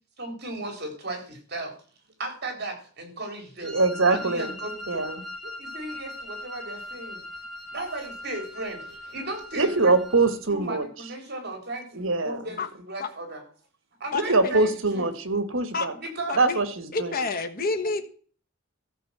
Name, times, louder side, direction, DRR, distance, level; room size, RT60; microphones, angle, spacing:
voice 1, 0.2-1.7 2.2-3.8 4.1-5.1 5.4-7.2 7.7-9.9 10.5-13.4 14.0-14.7 14.9-15.1 15.9-16.4, right 2 dB, 55° right, 3 dB, 4.0 m, -36 dB
Wind instrument woodwind instrument, 3.6-10.4, left 1 dB, ahead, 2.1 m, -40 dB
voice 2, 3.6-4.6 4.9-5.2 9.5-10.8 11.9-12.4 14.1-15.9 16.4-17.2, right 3 dB, 70° right, 11 dB, 1.5 m, -23 dB
voice 3, 14.1-14.5 15.7-15.9 16.3-16.6 16.9-18.1, left 4 dB, 45° left, 6 dB, 1.3 m, -28 dB
13.5 x 5.4 x 7.5 m, 0.43 s
head